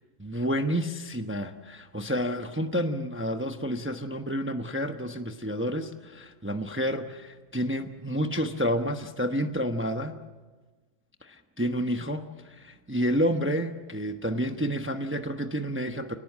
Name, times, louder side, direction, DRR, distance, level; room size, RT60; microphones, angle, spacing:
voice 1, 0.2-10.1 11.2-16.2, equal, 10° right, 6 dB, 0.9 m, -30 dB
29.0 x 18.5 x 7.4 m, 1.3 s
omnidirectional pair, 1.4 m